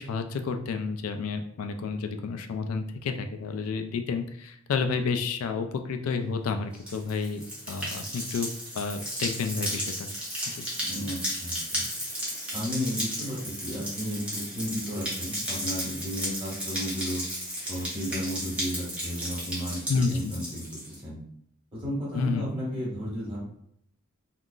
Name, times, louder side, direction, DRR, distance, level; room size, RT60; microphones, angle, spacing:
voice 1, 0.0-8.5 8.7-10.1 10.5-10.7 19.9-20.3 22.1-22.5, left 4 dB, 85° left, 6 dB, 0.3 m, -30 dB
sound 1, 6.7-20.9, equal, 5° right, 0.7 m, -34 dB
voice 2, 10.9-11.8 12.5-17.2 17.7-21.2 21.7-23.4, equal, 20° right, -7 dB, 1.3 m, -33 dB
3.6 x 2.4 x 2.4 m, 0.70 s
head